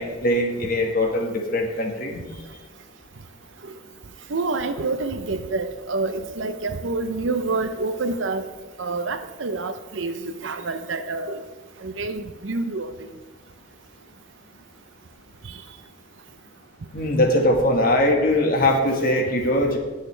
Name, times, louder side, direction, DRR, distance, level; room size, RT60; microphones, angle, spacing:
voice 1, 0.0-2.2 16.9-19.8, left 1 dB, 50° left, 2 dB, 1.6 m, -21 dB
voice 2, 4.3-8.5 8.8-11.4 11.8-13.1, right 3 dB, 75° right, 8 dB, 0.7 m, -27 dB
19.5 x 6.6 x 3.3 m, 1.3 s
head